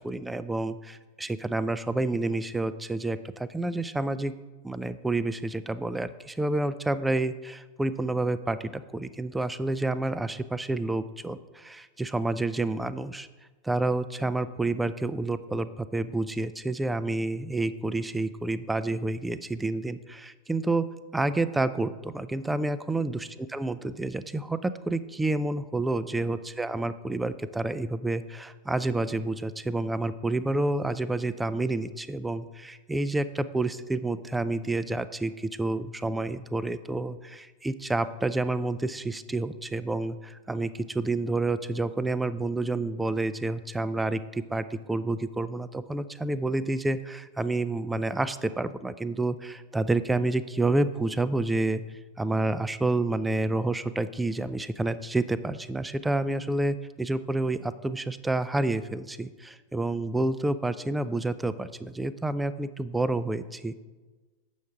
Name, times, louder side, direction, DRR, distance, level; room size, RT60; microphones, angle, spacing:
voice 1, 0.0-4.3 4.6-13.3 13.6-20.9 21.1-51.8 52.2-63.7, right 2 dB, 5° right, 14 dB, 0.3 m, -29 dB
7.2 x 5.7 x 4.7 m, 1.3 s
figure-of-eight pair, 90°, 0 cm